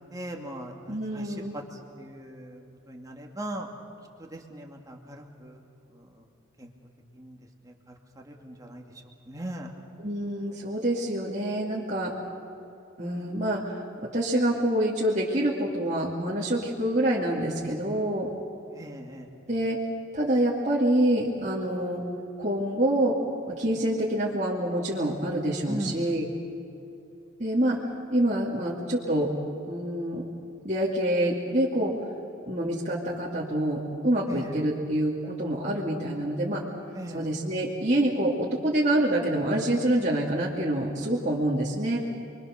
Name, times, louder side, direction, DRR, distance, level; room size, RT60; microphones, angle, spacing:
voice 1, 0.1-3.7 4.2-5.6 5.9-6.3 6.6-6.7 7.1-7.4 7.6-8.8 9.3-9.7 18.7-19.3 25.7-26.1 34.3-34.6 36.9-37.3, right 1 dB, 15° right, 1 dB, 2.4 m, -39 dB
voice 2, 0.9-1.5 10.0-12.1 13.0-18.3 19.5-19.8 20.1-22.0 22.4-23.2 23.5-26.3 27.4-27.8 28.1-29.3 29.7-30.2 30.6-31.9 32.5-36.6 37.1-42.0, right 1 dB, 35° right, -5 dB, 2.5 m, -26 dB
29.5 x 23.0 x 6.6 m, 2.8 s
head